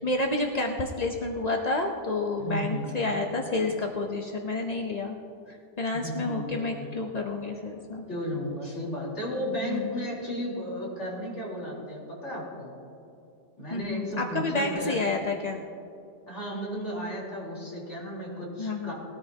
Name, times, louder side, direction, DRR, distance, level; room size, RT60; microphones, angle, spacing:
voice 1, 0.0-5.2 5.5-8.0 8.6-8.7 9.6-10.1 13.7-15.6 18.6-18.9, left 2 dB, 55° left, 2 dB, 0.4 m, -30 dB
voice 2, 2.4-2.9 5.9-7.0 8.1-12.7 13.6-15.0 16.3-18.9, equal, 40° left, -6 dB, 4.1 m, -34 dB
19.5 x 13.0 x 2.9 m, 2.7 s
omnidirectional pair, 1.9 m